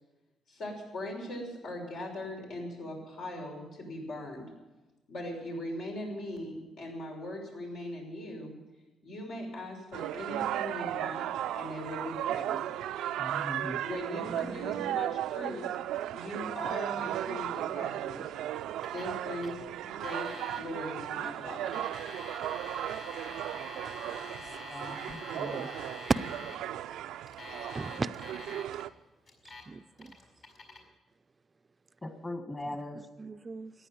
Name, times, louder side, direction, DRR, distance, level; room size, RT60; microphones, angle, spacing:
voice 1, 0.5-4.5 5.1-8.5 9.0-11.3 11.5-12.7 13.8-15.6 16.1-18.3 18.9-21.8, left 1 dB, 75° left, 6.0 m, -40 dB
sound 1, 9.9-28.9, right 12 dB, 85° right, 0.4 m, -35 dB
voice 2, 13.2-13.8 24.7-25.7 27.7-28.0 32.0-33.0, left 1 dB, 20° left, 1.6 m, -40 dB
voice 3, 14.1-15.0 27.7-28.1 29.7-30.2 32.7-33.7, right 3 dB, 30° right, 0.5 m, -40 dB
Alarm, 18.8-19.1 19.4-19.5 20.0-20.6 21.5-26.6 27.3-28.8 29.3-29.6 30.0-30.8, left 3 dB, 60° left, 4.8 m, -46 dB
15.0 x 10.0 x 9.3 m
cardioid pair, 90°, 0 cm